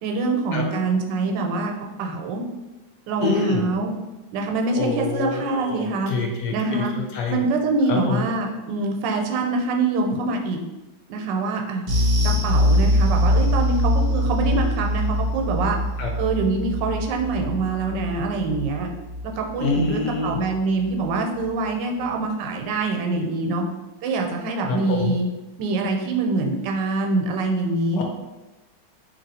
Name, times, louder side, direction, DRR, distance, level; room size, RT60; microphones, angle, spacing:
voice 1, 0.0-1.7 2.0-2.4 3.1-3.9 4.3-6.1 6.5-6.9 7.3-10.6 11.1-11.8 12.2-15.8 16.2-18.9 19.2-23.6 24.0-25.3 25.6-28.0, right 3 dB, 85° right, 2 dB, 1.3 m, -24 dB
voice 2, 3.2-3.6 4.7-6.8 7.1-7.4 7.9-8.2 16.0-16.1 19.6-20.4 24.7-25.1 28.0-28.1, left 4 dB, 75° left, 1 dB, 1.2 m, -26 dB
sound 1, 11.9-20.5 20.8-21.0 21.4-21.5, equal, 60° right, 0.4 m, -23 dB
2.9 x 2.9 x 4.1 m, 1.1 s
omnidirectional pair, 1.9 m